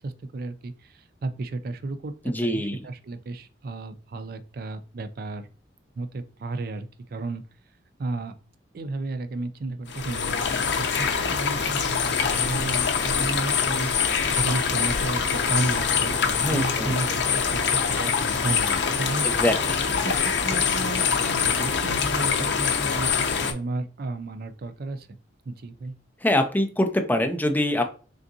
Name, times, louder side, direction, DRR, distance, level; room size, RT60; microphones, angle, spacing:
voice 1, 0.0-5.5 6.0-7.4 8.0-8.3 8.7-19.3 20.0-25.2 25.5-25.9, right 2 dB, 55° right, 10 dB, 0.4 m, -33 dB
voice 2, 2.2-2.9 16.4-16.9 19.2-19.8 26.2-27.8, left 1 dB, 10° left, 5 dB, 0.5 m, -24 dB
sound 1, 9.9-23.5, left 6 dB, 70° left, 0.6 m, -24 dB
3.8 x 3.5 x 2.6 m, 0.38 s
head